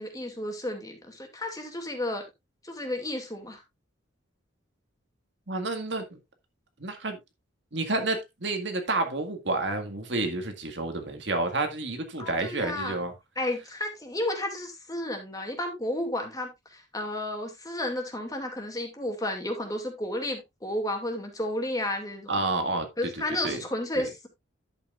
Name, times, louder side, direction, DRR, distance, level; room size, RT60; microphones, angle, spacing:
voice 1, 0.0-2.2 2.6-3.6 12.2-13.0 13.4-22.3 23.0-24.3, left 1 dB, 20° left, 2.4 m, -32 dB
voice 2, 5.5-6.2 6.8-7.2 7.7-13.1 22.3-23.6 24.0-24.1, right 2 dB, 60° right, 1.9 m, -30 dB
11.0 x 8.1 x 2.5 m
head